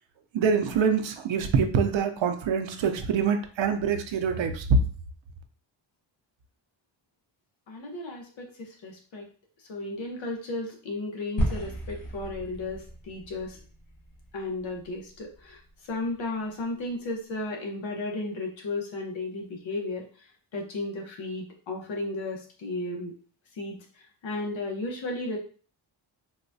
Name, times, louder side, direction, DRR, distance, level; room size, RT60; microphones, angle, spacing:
voice 1, 0.3-4.8, right 5 dB, 75° right, 0.6 m, -25 dB
voice 2, 7.7-9.2 9.7-13.6 14.3-15.6 15.9-20.0 20.5-23.1 23.6-23.8 24.2-25.4, left 2 dB, 75° left, 1.0 m, -34 dB
sound 1, 11.4-15.7, equal, 45° left, 1.2 m, -34 dB
4.0 x 2.2 x 2.6 m
cardioid pair, 100°, 46 cm